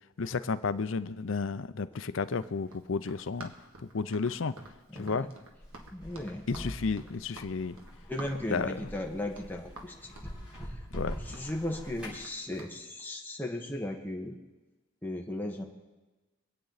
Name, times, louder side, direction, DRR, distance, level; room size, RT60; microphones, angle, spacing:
voice 1, 0.2-3.5 3.9-4.6 4.9-5.3 6.5-7.8 8.5-8.7 10.9-11.2, left 4 dB, 65° left, 13 dB, 0.6 m, -32 dB
Run, 2.2-12.8, right 2 dB, 90° right, 1.7 m, -50 dB
voice 2, 4.9-5.3 5.9-6.5 8.1-10.1 10.6-10.8 11.1-14.4 15.0-15.6, left 1 dB, 10° left, 0 dB, 1.6 m, -36 dB
sound 1, 5.6-12.2, equal, 5° right, 5.7 m, -43 dB
25.0 x 8.7 x 4.1 m, 1.2 s
head